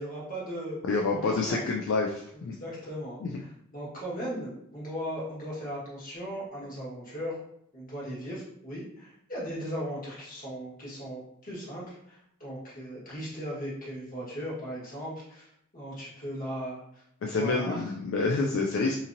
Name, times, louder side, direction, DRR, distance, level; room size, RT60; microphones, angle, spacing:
voice 1, 0.0-0.8 1.1-1.7 2.3-7.4 7.7-17.8, equal, 40° left, -7 dB, 1.2 m, -38 dB
voice 2, 0.9-2.5 3.2-3.3 17.2-19.0, left 3 dB, 60° left, 0 dB, 0.3 m, -28 dB
2.8 x 2.7 x 2.5 m, 0.72 s
head